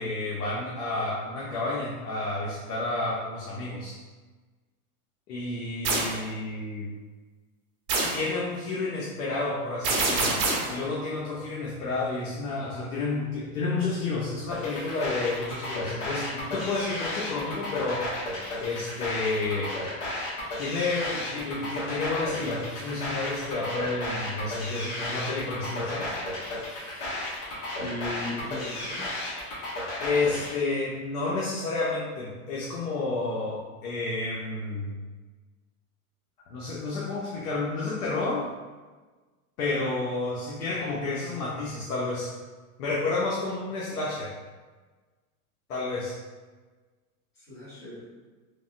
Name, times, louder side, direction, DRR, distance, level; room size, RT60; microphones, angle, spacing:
voice 1, 0.0-3.9 5.3-6.9 8.1-10.4 10.7-18.0 18.6-19.7 20.6-26.1 30.0-34.9 36.5-38.5 39.6-42.3 42.8-44.3 45.7-46.2, left 3 dB, 80° left, -5 dB, 0.8 m, -30 dB
sound 1, 5.8-6.2 7.9-8.3 9.8-10.8, right 3 dB, 40° right, 0.7 m, -25 dB
sound 2, 14.5-30.5, left 1 dB, 50° left, 1.1 m, -34 dB
voice 2, 27.8-29.1 47.3-48.1, left 2 dB, 25° left, -9 dB, 1.4 m, -37 dB
3.3 x 2.1 x 2.5 m, 1.3 s
supercardioid pair, 145°, 44 cm